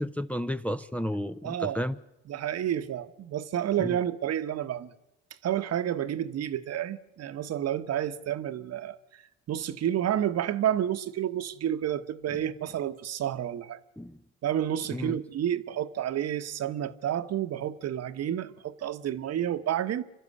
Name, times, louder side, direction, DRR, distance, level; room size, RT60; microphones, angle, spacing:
voice 1, 0.0-2.0 3.8-4.0 14.0-14.2 14.9-15.2, equal, 5° left, 0.7 m, -32 dB
voice 2, 1.4-1.8 2.3-4.9 5.4-9.0 9.5-13.8 14.4-20.0, right 10 dB, 55° right, 1.2 m, -30 dB
26.0 x 12.0 x 9.7 m
supercardioid pair, 75°, 31 cm